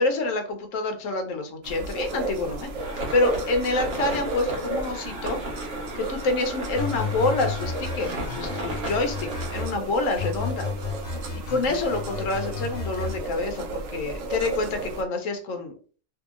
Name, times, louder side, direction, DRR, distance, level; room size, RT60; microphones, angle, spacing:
voice 1, 0.0-5.4 5.9-10.7 11.5-15.7, left 2 dB, 85° left, 6 dB, 1.1 m, -27 dB
sound 1, 1.6-15.0, right 2 dB, 85° right, 1.0 m, -34 dB
sound 2, 2.8-9.7, right 1 dB, 55° right, 1.1 m, -35 dB
sound 3, 6.7-9.8 10.2-13.2, left 5 dB, 60° left, 1.2 m, -33 dB
2.8 x 2.7 x 2.4 m, 0.39 s
omnidirectional pair, 1.3 m